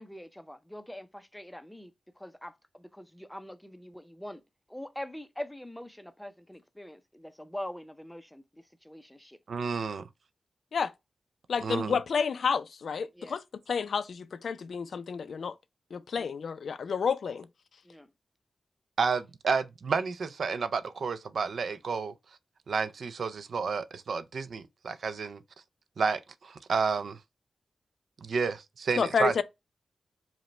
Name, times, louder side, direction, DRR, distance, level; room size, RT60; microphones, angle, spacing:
voice 1, 0.0-4.4 4.7-9.4 13.1-13.4 16.1-16.3 17.8-18.1, left 1 dB, 5° left, 0.4 m, -43 dB
voice 2, 9.5-10.1 11.6-12.0 19.0-22.1 22.7-25.4 26.0-27.2 28.2-29.3, right 5 dB, 70° right, 0.4 m, -30 dB
voice 3, 11.5-13.4 13.7-15.5 15.9-17.5 29.0-29.4, left 6 dB, 70° left, 0.4 m, -30 dB
4.9 x 2.1 x 3.1 m
wide cardioid pair, 140°, 0 cm